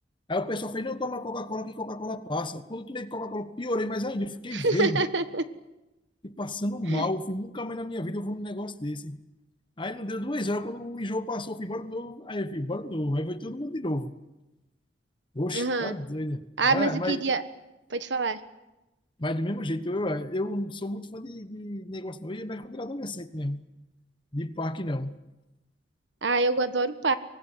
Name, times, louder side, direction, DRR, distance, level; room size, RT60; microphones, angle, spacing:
voice 1, 0.3-5.0 6.2-9.2 9.8-14.1 15.3-17.2 19.2-23.6 24.3-25.2, left 1 dB, 30° left, 11 dB, 1.2 m, -31 dB
voice 2, 4.5-5.4 6.9-7.1 15.5-15.9 16.6-17.4 17.9-18.4 26.2-27.1, right 3 dB, 90° right, 11 dB, 1.4 m, -25 dB
24.5 x 19.5 x 9.2 m, 1.0 s
head